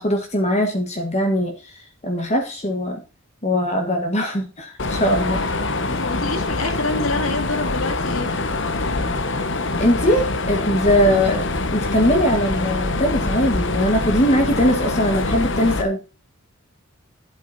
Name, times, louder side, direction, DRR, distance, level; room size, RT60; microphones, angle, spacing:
voice 1, 0.0-3.0 3.4-5.4 9.8-11.4 11.7-16.0, equal, 30° left, 4 dB, 1.6 m, -21 dB
Mechanisms, 4.8-15.8, left 2 dB, 60° left, 1.2 m, -24 dB
voice 2, 5.9-8.3 11.0-11.2, left 2 dB, 75° left, 7 dB, 2.3 m, -27 dB
11.5 x 8.6 x 4.2 m, 0.31 s
head